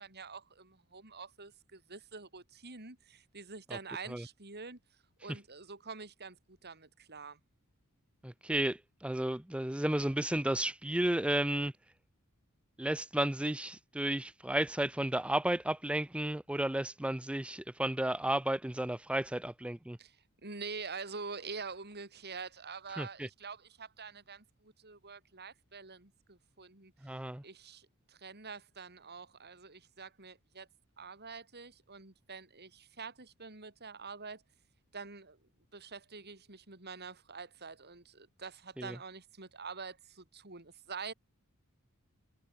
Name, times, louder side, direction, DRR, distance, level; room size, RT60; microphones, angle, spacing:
voice 1, 0.0-4.8 5.2-7.4 20.0-27.1 27.4-30.7 31.0-34.4 34.9-35.4 35.7-41.1, right 4 dB, 50° right, 5.2 m, -46 dB
voice 2, 8.2-11.7 12.8-20.0 23.0-23.3 27.0-27.4 38.8-39.0, right 1 dB, 5° right, 0.4 m, -33 dB
head